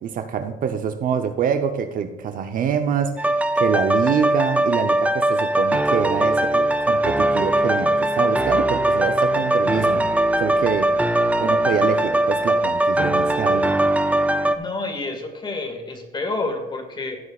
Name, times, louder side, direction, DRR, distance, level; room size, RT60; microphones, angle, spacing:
voice 1, 0.0-10.9 11.4-13.7, right 7 dB, 55° right, 7 dB, 0.8 m, -25 dB
sound 1, 3.2-14.6, right 1 dB, 10° right, 0.6 m, -20 dB
voice 2, 14.5-17.2, left 3 dB, 25° left, 5 dB, 2.0 m, -29 dB
15.5 x 8.1 x 2.4 m, 1.2 s
cardioid pair, 110°, 17 cm